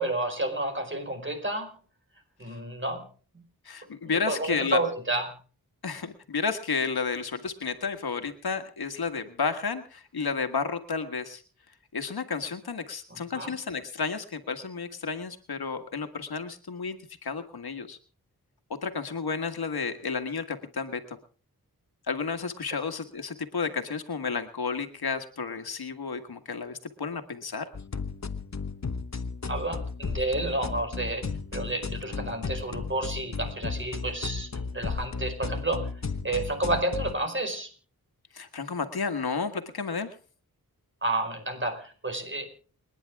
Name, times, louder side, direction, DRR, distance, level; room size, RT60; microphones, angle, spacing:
voice 1, 0.0-1.7 2.4-3.0 3.3-3.4 4.0-5.3 13.1-13.5 29.5-35.9 36.2-37.7 41.0-42.5, right 2 dB, 35° right, 5 dB, 5.1 m, -30 dB
voice 2, 3.7-4.8 5.8-11.4 11.9-17.0 17.2-18.0 18.7-21.2 22.1-27.7 38.3-40.2, left 5 dB, 85° left, 8 dB, 1.8 m, -32 dB
sound 1, 27.7-37.1, left 4 dB, 45° left, 1.2 m, -34 dB
29.5 x 10.0 x 3.6 m, 0.39 s
wide cardioid pair, 60°, 36 cm